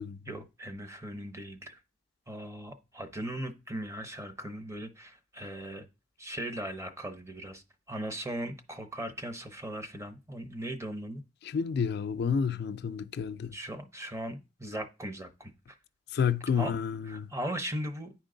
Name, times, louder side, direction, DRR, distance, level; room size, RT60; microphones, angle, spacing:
voice 1, 0.3-1.8 2.3-5.9 6.2-11.2 13.5-15.8 16.6-16.7 17.1-18.1, right 1 dB, 15° right, 0.8 m, -38 dB
voice 2, 11.4-13.6 16.1-17.3, left 6 dB, 55° left, 0.4 m, -30 dB
9.9 x 4.5 x 3.8 m
head